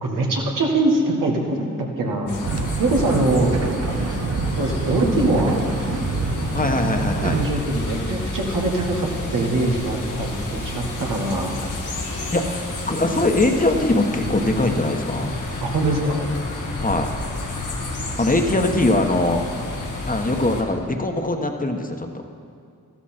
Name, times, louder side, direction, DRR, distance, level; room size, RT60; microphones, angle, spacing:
voice 1, 0.0-1.7 2.0-2.3 2.8-3.5 4.5-5.6 6.9-7.0 7.3-11.6 15.6-16.3, right 2 dB, 85° right, 0 dB, 1.7 m, -22 dB
sound 1, 2.3-20.6, left 2 dB, 70° left, 1.7 m, -30 dB
sound 2, 2.4-7.5, right 4 dB, 50° right, 0.9 m, -26 dB
voice 2, 6.5-7.4 12.3-15.3 16.8-17.1 18.2-19.4 19.9-22.1, left 2 dB, 25° left, 4 dB, 1.3 m, -21 dB
13.5 x 12.5 x 4.4 m, 2.3 s
cardioid pair, 45°, 32 cm